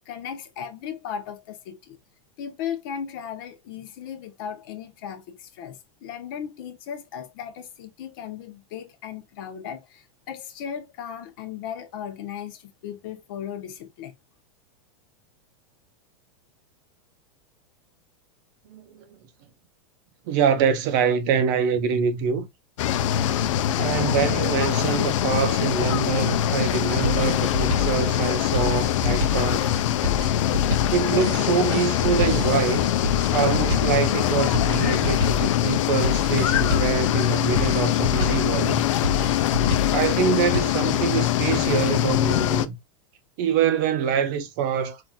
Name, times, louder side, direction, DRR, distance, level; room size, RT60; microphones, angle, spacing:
voice 1, 0.0-2.0 2.4-14.1, left 8 dB, 45° left, 0.7 m, -36 dB
voice 2, 18.7-19.1 20.3-22.5 23.7-29.7 30.9-33.0 33.3-38.8 39.9-42.8 43.4-45.0, right 7 dB, 40° right, 0.6 m, -25 dB
sound 1, 22.8-42.7, left 12 dB, 75° left, 0.5 m, -23 dB
sound 2, 26.6-40.6, left 3 dB, 25° right, 1.1 m, -29 dB
5.6 x 2.5 x 2.2 m
supercardioid pair, 175°, 16 cm